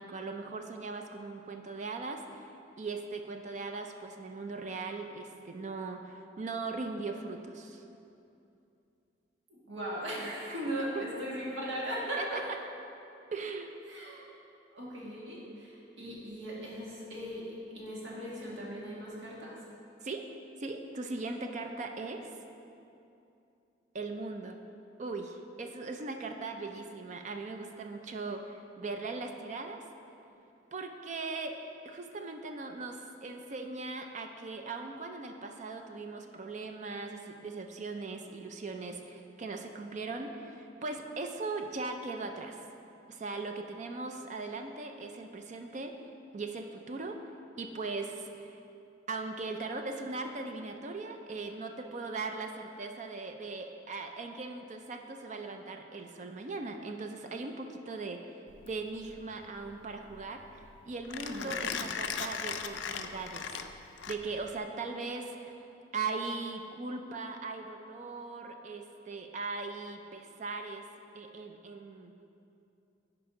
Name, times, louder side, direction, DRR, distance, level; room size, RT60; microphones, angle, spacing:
voice 1, 0.0-2.5 2.8-7.9 10.9-11.0 12.2-12.4 13.3-13.7 20.0-20.2 20.6-22.3 23.9-24.6 25.0-29.8 30.7-31.6 31.8-42.6 43.1-45.9 46.3-47.2 47.6-48.6 49.1-63.6 64.1-65.5 65.9-70.8 71.1-72.2, right 3 dB, 40° right, 5 dB, 0.4 m, -39 dB
voice 2, 9.5-12.4 13.9-14.3 14.7-19.5 22.0-22.2 61.1-61.6, equal, 80° right, -6 dB, 1.9 m, -38 dB
Mechanisms, 58.5-64.6, left 7 dB, 75° left, 0.4 m, -38 dB
10.5 x 5.1 x 3.7 m, 2.7 s
head